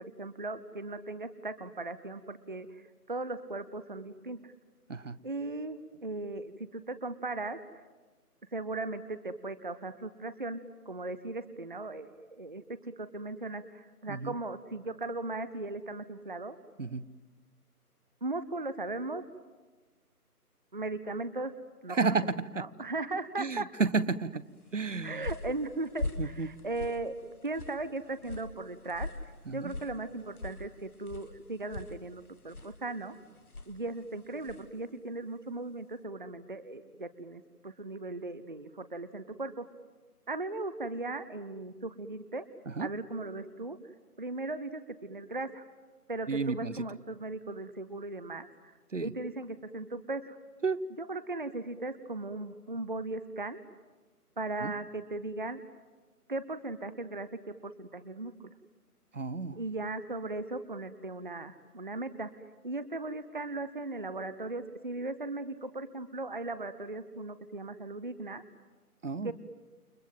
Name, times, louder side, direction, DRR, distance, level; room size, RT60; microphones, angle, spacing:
voice 1, 0.0-4.5 5.2-7.8 8.5-16.6 18.2-19.2 20.7-21.5 21.8-22.2 22.6-23.7 25.0-33.2 33.7-39.7 40.3-42.4 42.8-43.8 44.2-45.6 46.1-48.7 49.0-50.4 51.0-53.6 54.4-55.6 56.3-58.3 59.5-62.3 62.6-68.4 69.2-69.3, right 2 dB, 35° right, 12 dB, 0.8 m, -38 dB
voice 2, 21.9-22.6 23.4-24.4 24.7-25.3 26.2-26.5 29.5-29.7 42.7-42.9 46.3-46.9 48.9-49.1 50.6-50.8 54.6-54.7 59.1-59.6 69.0-69.3, right 4 dB, 55° right, 16 dB, 1.1 m, -31 dB
sound 1, 24.7-34.8, left 2 dB, 70° left, 1.9 m, -43 dB
29.5 x 24.5 x 7.7 m, 1.3 s
figure-of-eight pair, 155°, 46 cm